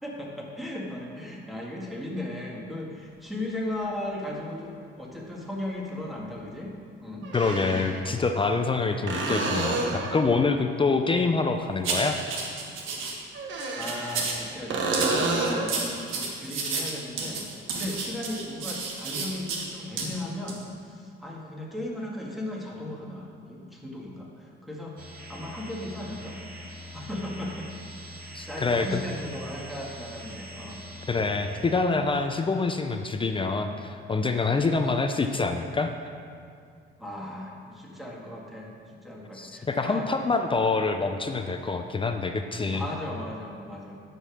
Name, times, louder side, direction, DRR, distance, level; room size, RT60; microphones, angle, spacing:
voice 1, 0.0-6.7 7.0-8.0 13.2-13.4 13.7-25.0 25.3-26.4 26.9-27.7 28.1-30.8 37.0-40.1 42.6-44.0, left 1 dB, ahead, -3 dB, 2.0 m, -37 dB
sound 1, 3.7-3.8 5.9-6.0 7.2-8.0 9.1-10.2 13.3-14.4 14.7-15.8 19.4-19.5, right 3 dB, 70° right, 1.4 m, -29 dB
voice 2, 7.3-12.4 28.3-29.0 31.1-35.9 39.3-42.8, left 4 dB, 25° left, 6 dB, 0.5 m, -26 dB
sound 2, 11.8-13.1 13.6-14.4 14.9-19.6 20.0-20.1 20.5-20.6, right 4 dB, 90° right, 1.4 m, -31 dB
sound 3, 25.0-31.8, left 1 dB, 45° right, 2.3 m, -43 dB
9.7 x 5.3 x 6.3 m, 2.3 s
cardioid pair, 90°, 20 cm